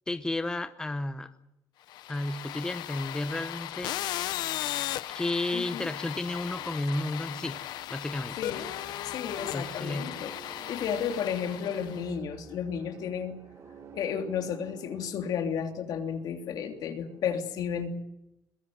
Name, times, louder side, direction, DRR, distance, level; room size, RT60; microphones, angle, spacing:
voice 1, 0.1-1.3 2.1-3.9 5.1-7.6 7.9-8.4 9.5-10.1, left 2 dB, 10° left, 10 dB, 0.9 m, -32 dB
sound 1, 1.9-12.1, left 14 dB, 85° left, 0.9 m, -37 dB
voice 2, 5.5-5.9 8.4-8.7 9.0-10.4 10.7-13.4 13.9-18.0, left 7 dB, 70° left, 5 dB, 3.1 m, -33 dB
sound 2, 6.1-17.2, right 6 dB, 45° right, 3.1 m, -51 dB
22.0 x 21.5 x 7.9 m, 0.86 s
cardioid pair, 140°, 7 cm